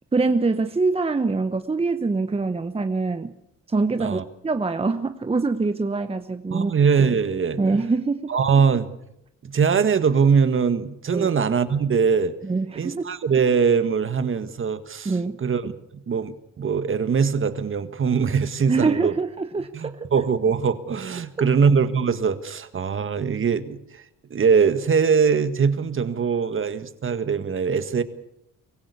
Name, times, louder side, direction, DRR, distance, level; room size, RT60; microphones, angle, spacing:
voice 1, 0.1-3.3 3.7-6.7 7.6-8.3 11.1-11.3 12.4-13.1 15.0-15.4 18.7-20.1 21.4-21.5, right 3 dB, 20° right, 9 dB, 1.0 m, -24 dB
voice 2, 6.5-7.6 8.3-8.9 9.4-12.3 12.8-15.7 16.1-19.1 19.7-24.0 24.3-28.0, right 6 dB, 40° right, 11 dB, 1.7 m, -22 dB
24.5 x 16.0 x 8.4 m, 0.80 s
cardioid pair, 90°, 30 cm